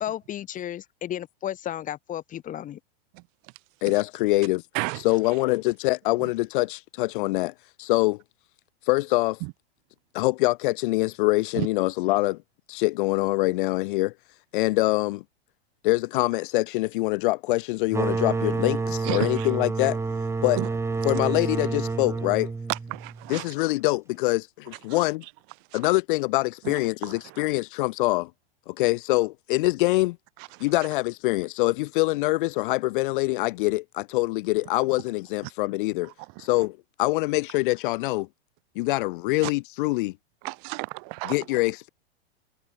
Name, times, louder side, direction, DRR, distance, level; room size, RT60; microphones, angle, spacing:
voice 1, 0.0-2.8, left 11 dB, 25° left, 1.2 m, -33 dB
voice 2, 3.8-4.6 5.0-7.5 7.8-8.2 8.8-9.4 10.1-12.4 12.7-14.1 14.5-15.2 15.8-20.0 20.4-20.6 21.0-22.5 23.3-25.2 25.7-28.3 28.7-30.2 30.6-36.1 36.4-38.3 38.8-40.2 41.2-41.9, left 21 dB, 55° left, 0.4 m, -24 dB
sound 1, 17.9-23.4, right 4 dB, 10° right, 1.0 m, -28 dB
voice 3, 19.0-19.5 20.6-20.7 22.7-23.5 24.9-25.0 25.7-25.8 26.6-27.4 30.5-30.6 39.4-39.5 40.4-41.4, right 39 dB, 45° right, 1.0 m, -32 dB
hypercardioid pair, 125°, 31 cm